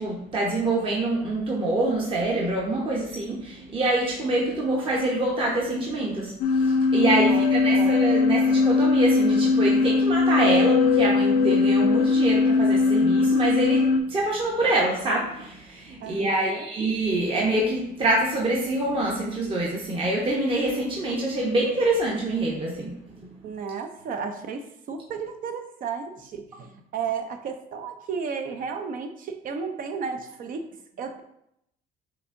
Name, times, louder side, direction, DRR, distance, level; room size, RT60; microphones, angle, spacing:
voice 1, 0.0-22.9, right 2 dB, 30° right, -3 dB, 0.9 m, -25 dB
sound 1, 6.4-14.0, left 4 dB, 55° left, 0.4 m, -20 dB
voice 2, 16.0-16.7 23.4-30.6 31.0-31.2, right 6 dB, 55° right, 6 dB, 0.5 m, -33 dB
5.9 x 2.8 x 2.6 m, 0.77 s
cardioid pair, 110°, 17 cm